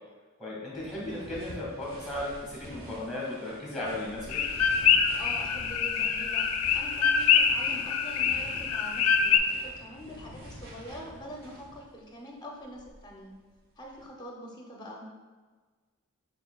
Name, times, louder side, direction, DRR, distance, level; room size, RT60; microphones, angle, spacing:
voice 1, 0.4-4.4, left 1 dB, 5° right, -4 dB, 1.1 m, -36 dB
sound 1, 0.7-12.0 12.6-14.1, equal, 45° right, 0.9 m, -47 dB
sound 2, 4.3-9.4, left 7 dB, 75° left, 0.3 m, -25 dB
voice 2, 5.1-6.5 6.7-13.3 13.8-15.0, equal, 20° left, -1 dB, 0.5 m, -44 dB
4.4 x 3.7 x 2.3 m, 1.4 s
head